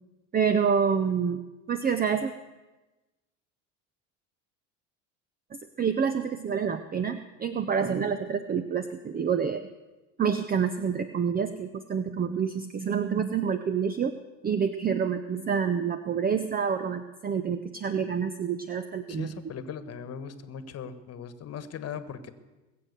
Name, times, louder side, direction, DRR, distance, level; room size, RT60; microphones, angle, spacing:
voice 1, 0.3-1.4 1.7-2.3 5.5-9.7 10.2-14.1 14.4-19.3, right 6 dB, 25° right, 11 dB, 0.7 m, -27 dB
voice 2, 19.1-22.3, left 7 dB, 45° left, 12 dB, 1.5 m, -39 dB
21.0 x 7.7 x 6.8 m, 1.1 s
supercardioid pair, 90°, 35 cm